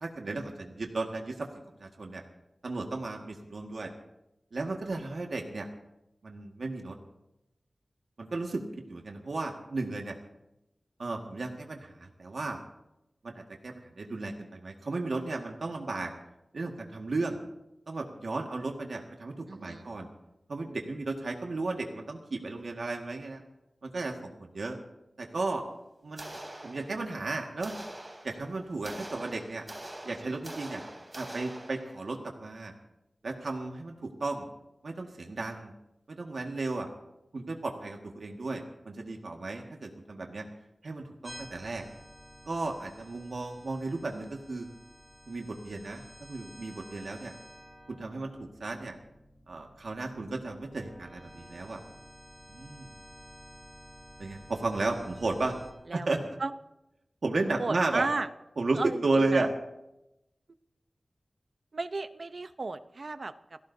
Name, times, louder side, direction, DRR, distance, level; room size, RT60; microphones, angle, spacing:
voice 1, 0.0-1.5 1.8-2.2 2.6-3.9 4.5-5.7 6.2-7.0 8.2-8.6 8.9-10.2 11.0-12.6 13.2-16.1 16.5-17.4 17.9-20.1 20.5-23.4 23.8-24.8 25.2-25.6 26.0-26.4 26.6-27.7 28.2-29.7 30.0-30.8 31.1-32.7 33.2-34.5 34.8-35.7 36.1-36.9 37.3-40.5 40.8-41.8 42.5-44.7 45.3-47.3 47.9-49.0 49.5-51.8 52.5-52.9 54.2-55.6 55.9-56.4 57.2-58.1 58.6-59.5, right 3 dB, 70° right, 2 dB, 1.8 m, -34 dB
voice 2, 19.5-19.9 55.9-56.1 56.4-56.5 57.6-58.3 58.7-59.0 59.3-59.5 61.7-63.6, right 3 dB, 55° right, 11 dB, 0.8 m, -34 dB
sound 1, 26.2-27.2 27.6-32.1, right 1 dB, 25° right, 3.5 m, -44 dB
sound 2, 41.2-55.7, equal, ahead, 5.0 m, -52 dB
28.0 x 17.5 x 2.8 m, 0.90 s
wide cardioid pair, 95°, 0 cm